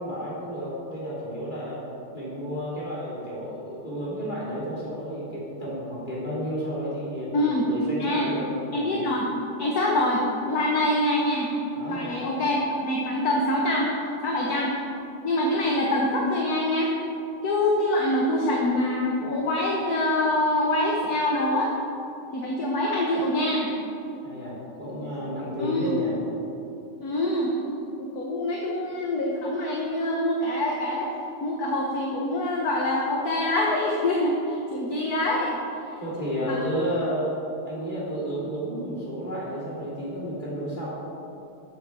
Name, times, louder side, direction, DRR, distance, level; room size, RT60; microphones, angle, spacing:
voice 1, 0.0-1.8 2.1-7.3 7.7-9.0 11.7-12.2 24.2-26.2 36.0-40.9, equal, 20° left, -7 dB, 3.4 m, -31 dB
voice 2, 7.3-7.7 8.0-8.3 8.7-9.3 9.6-10.2 10.5-11.5 11.9-13.9 14.2-14.8 15.2-16.9 17.4-21.7 22.3-23.7 25.6-25.9 27.0-27.5 28.0-31.1 31.4-35.6 35.9-36.0 36.5-36.6, left 1 dB, 50° left, -2 dB, 1.5 m, -25 dB
13.0 x 8.7 x 4.8 m, 2.8 s
omnidirectional pair, 2.3 m